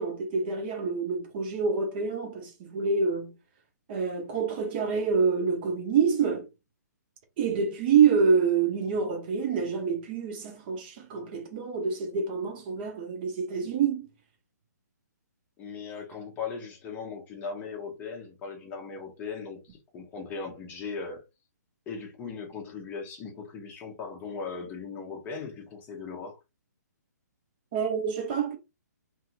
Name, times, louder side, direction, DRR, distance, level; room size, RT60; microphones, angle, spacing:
voice 1, 0.0-3.3 3.9-6.5 7.4-14.1 27.7-28.6, right 5 dB, 35° right, 0.7 m, -27 dB
voice 2, 15.6-21.2 21.9-26.4, left 5 dB, 15° left, 0.8 m, -38 dB
2.7 x 2.6 x 2.4 m
figure-of-eight pair, 130°, 10 cm